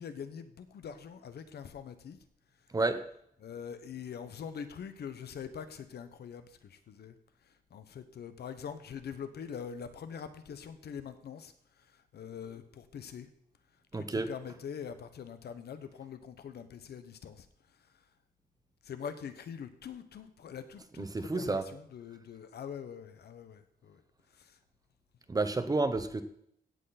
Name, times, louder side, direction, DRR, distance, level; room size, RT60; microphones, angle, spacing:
voice 1, 0.0-2.2 3.4-13.3 13.9-18.0 18.8-24.0 24.3-24.6, left 7 dB, 75° left, 10 dB, 1.1 m, -44 dB
voice 2, 2.7-3.0 13.9-14.3 21.0-21.7 25.3-26.2, right 3 dB, 20° right, 10 dB, 0.9 m, -30 dB
17.0 x 7.9 x 4.2 m, 0.70 s
wide cardioid pair, 140°, 17 cm